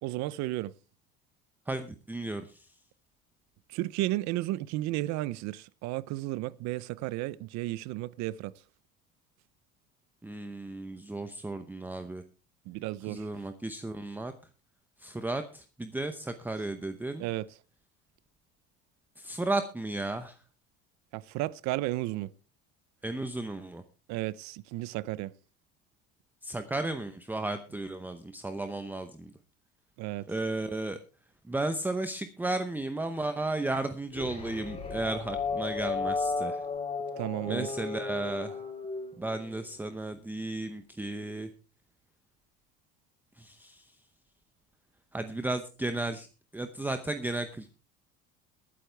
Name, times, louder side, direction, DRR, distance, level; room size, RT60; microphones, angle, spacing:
voice 1, 0.0-0.7 3.7-8.5 12.7-13.3 17.2-17.5 21.1-22.3 24.1-25.3 30.0-30.3 37.2-37.7, right 17 dB, 60° right, 0.7 m, -33 dB
voice 2, 1.7-2.7 10.2-12.2 13.1-14.3 15.0-17.3 19.2-20.4 23.0-23.8 26.4-29.3 30.3-31.0 31.5-36.6 37.5-38.6 39.2-41.5 43.4-43.9 45.1-46.3 46.5-47.7, right 2 dB, 5° right, 0.8 m, -34 dB
sound 1, 34.1-39.7, left 4 dB, 20° left, 4.1 m, -34 dB
22.0 x 8.4 x 3.4 m
supercardioid pair, 125°, 31 cm